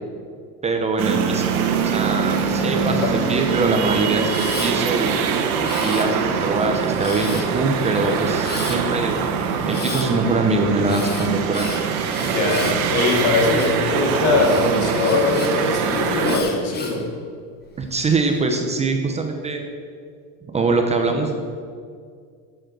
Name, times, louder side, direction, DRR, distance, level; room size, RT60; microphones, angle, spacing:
voice 1, 0.6-1.5 1.8-5.2 5.8-9.3 9.7-11.7 17.8-19.6 20.5-21.3, right 3 dB, 15° right, 4 dB, 0.7 m, -23 dB
sound 1, 1.0-16.4, right 6 dB, 85° right, 1.7 m, -23 dB
voice 2, 2.5-3.1 12.1-17.0, left 3 dB, 70° left, 1 dB, 3.0 m, -21 dB
Camera, 4.3-4.7 5.6-6.4 7.0-7.6 8.4-8.8 9.7-10.1 10.9-13.8 14.4-15.5 16.2-17.0 17.6-18.1, left 4 dB, 20° left, 1.4 m, -34 dB
11.5 x 7.9 x 7.7 m, 2.1 s
cardioid pair, 165°, 43 cm